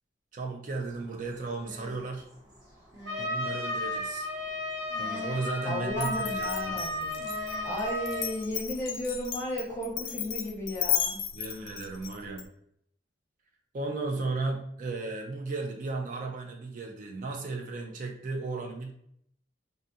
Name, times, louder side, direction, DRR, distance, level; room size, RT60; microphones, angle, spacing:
voice 1, 0.3-2.3 3.2-4.3 5.0-6.8 11.3-12.5 13.7-18.9, right 3 dB, 40° right, 2 dB, 0.3 m, -35 dB
sound 1, 0.8-8.4, left 1 dB, 20° right, 0.7 m, -49 dB
Trumpet, 3.0-8.3, left 2 dB, 65° right, 0.7 m, -33 dB
voice 2, 5.6-7.2 7.6-11.2, equal, 15° left, -6 dB, 0.8 m, -34 dB
Glass, 6.0-12.4, left 9 dB, 50° left, 0.3 m, -34 dB
2.5 x 2.4 x 2.6 m, 0.69 s
head